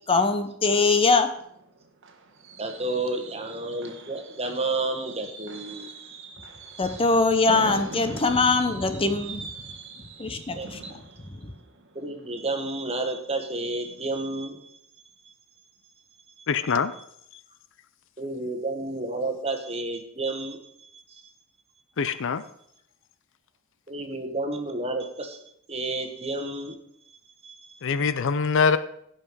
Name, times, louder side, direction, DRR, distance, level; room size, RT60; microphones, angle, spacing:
voice 1, 0.1-1.3 6.8-9.5 10.2-10.8 11.3-11.5, left 3 dB, 25° left, 8 dB, 0.8 m, -22 dB
Fireworks, 1.4-13.1 13.4-13.7 14.0-14.1, right 3 dB, 60° right, 1.2 m, -43 dB
voice 2, 2.6-6.0 10.6-10.9 11.9-14.6 15.2-15.3 16.4-16.5 18.2-21.2 23.9-25.4 25.7-26.7 27.4-27.8, right 2 dB, 30° right, 5 dB, 1.4 m, -31 dB
voice 3, 16.5-16.9 22.0-22.4 27.8-28.8, left 5 dB, 60° left, 14 dB, 0.5 m, -23 dB
16.5 x 5.7 x 4.7 m, 0.71 s
head